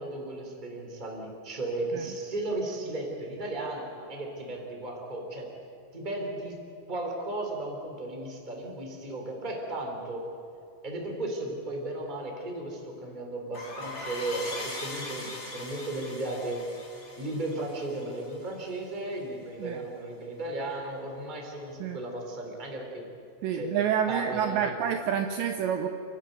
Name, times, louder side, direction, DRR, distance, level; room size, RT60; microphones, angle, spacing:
voice 1, 0.0-5.5 5.9-6.6 6.9-10.3 10.8-16.7 17.2-23.1 23.5-23.7 24.1-24.8, right 2 dB, 10° right, 1 dB, 2.6 m, -35 dB
sound 1, 13.5-18.8, left 2 dB, 30° left, 3.7 m, -40 dB
voice 2, 23.4-25.9, right 8 dB, 80° right, 6 dB, 2.7 m, -28 dB
29.5 x 12.5 x 9.3 m, 2.7 s
omnidirectional pair, 5.8 m